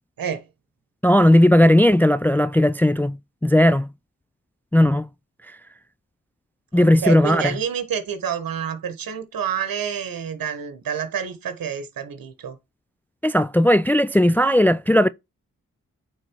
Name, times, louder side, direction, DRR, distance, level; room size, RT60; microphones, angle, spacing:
voice 1, 0.2-0.5 6.7-12.6, right 8 dB, 75° right, 1.4 m, -28 dB
voice 2, 1.0-3.2 3.4-3.9 4.7-5.1 6.7-7.4 13.2-15.1, left 1 dB, 5° left, 0.4 m, -16 dB
9.1 x 3.8 x 4.6 m
cardioid pair, 40°, 34 cm